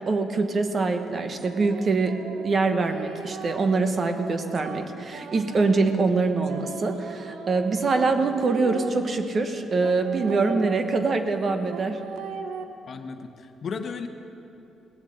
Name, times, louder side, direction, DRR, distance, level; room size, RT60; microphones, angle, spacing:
voice 1, 0.0-2.2 2.4-12.0, right 3 dB, 40° right, 7 dB, 1.1 m, -24 dB
sound 1, 0.7-8.9 9.8-12.6, right 6 dB, 85° right, 0.8 m, -39 dB
voice 2, 12.9-14.1, left 5 dB, 50° left, 7 dB, 1.0 m, -34 dB
18.5 x 7.4 x 7.8 m, 2.8 s
cardioid pair, 105°, 0 cm